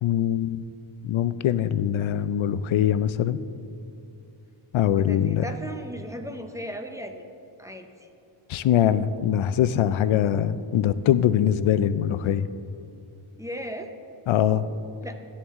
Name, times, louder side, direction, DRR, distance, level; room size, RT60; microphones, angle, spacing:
voice 1, 0.0-0.6 1.0-3.4 4.7-5.4 8.5-12.5 14.3-14.6, left 10 dB, 70° left, 14 dB, 0.5 m, -22 dB
voice 2, 5.0-7.2 7.6-7.9 13.4-13.9 15.0-15.2, equal, 5° right, 5 dB, 0.6 m, -36 dB
12.5 x 10.0 x 3.6 m, 2.7 s
wide cardioid pair, 145°, 50 cm